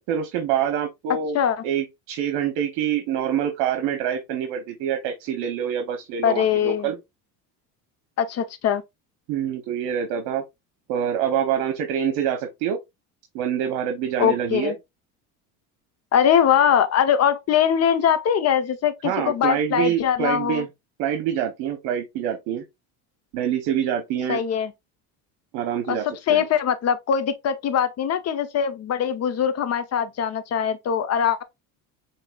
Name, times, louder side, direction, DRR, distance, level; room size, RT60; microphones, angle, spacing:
voice 1, 0.0-1.4 1.6-7.0 9.3-10.4 10.9-12.8 13.3-14.7 19.0-20.7 21.0-22.6 23.3-24.4 25.5-26.4, right 9 dB, 75° right, 1.0 m, -26 dB
voice 2, 6.2-6.9 8.2-8.8 14.2-14.7 16.1-20.6 24.3-24.7 25.9-26.0 26.3-31.4, left 8 dB, 40° left, 0.8 m, -22 dB
6.6 x 3.0 x 2.4 m
supercardioid pair, 115°, 41 cm